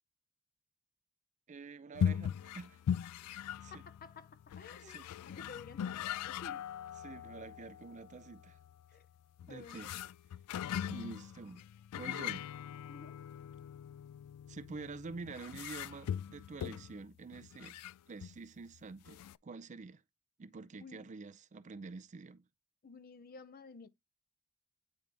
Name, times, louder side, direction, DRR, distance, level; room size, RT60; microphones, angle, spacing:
voice 1, 1.5-2.8 3.6-3.8 4.8-5.1 7.0-8.6 9.4-9.9 10.9-11.6 11.9-12.5 14.5-17.8 18.1-20.0 20.4-22.4, right 4 dB, 35° right, 0.4 m, -47 dB
sound 1, 1.9-18.4 18.7-18.8 19.1-19.4, left 9 dB, 90° left, 0.3 m, -40 dB
voice 2, 3.8-6.7 8.9-9.1 9.5-9.8 12.9-13.2 20.7-21.2 22.8-23.9, left 4 dB, 40° left, 0.6 m, -53 dB
9.0 x 3.9 x 3.3 m
head